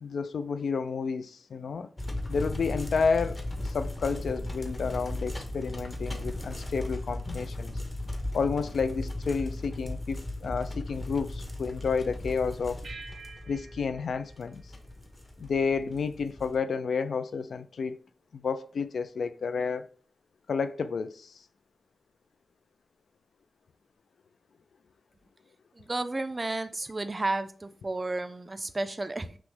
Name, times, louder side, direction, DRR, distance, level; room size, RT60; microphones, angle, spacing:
voice 1, 0.0-1.9 2.3-7.7 8.3-12.9 13.5-14.6 15.4-18.0 18.3-19.9 20.5-21.3, left 5 dB, 75° left, 0.3 m, -30 dB
sound 1, 2.0-16.6, left 1 dB, 20° left, 0.7 m, -37 dB
sound 2, 12.8-15.6, right 4 dB, 75° right, 0.7 m, -49 dB
voice 2, 25.7-29.4, right 2 dB, 25° right, 0.3 m, -32 dB
5.9 x 2.1 x 3.6 m
wide cardioid pair, 165°, 0 cm